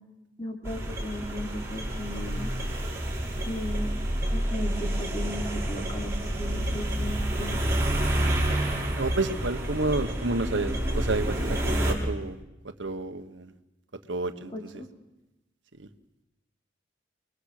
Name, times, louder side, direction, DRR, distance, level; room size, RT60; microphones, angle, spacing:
voice 1, 0.4-2.5 3.5-3.9 4.3-7.6 14.5-14.9, left 1 dB, 25° left, 1 dB, 3.4 m, -36 dB
sound 1, 0.6-11.9, right 1 dB, 15° right, 4.8 m, -29 dB
voice 2, 9.0-12.4 12.8-13.5 14.1-14.5 15.8-15.9, right 2 dB, 85° right, 8 dB, 1.4 m, -30 dB
30.0 x 21.0 x 6.7 m, 0.98 s
head